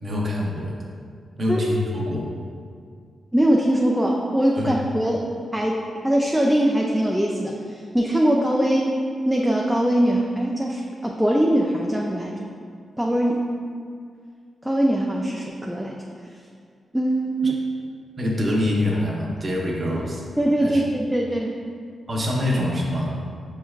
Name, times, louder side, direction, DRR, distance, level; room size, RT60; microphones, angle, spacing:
voice 1, 0.0-0.8 1.4-2.3 4.6-4.7 17.4-17.5 18.2-20.2 20.6-20.8 22.1-23.2, left 1 dB, 35° right, -3 dB, 0.8 m, -25 dB
voice 2, 3.3-9.0 9.3-12.4 13.0-13.5 14.6-16.0 16.9-17.6 20.4-21.6, right 1 dB, 5° right, -2 dB, 0.3 m, -22 dB
6.3 x 3.2 x 2.3 m, 2.2 s
cardioid pair, 100°, 0 cm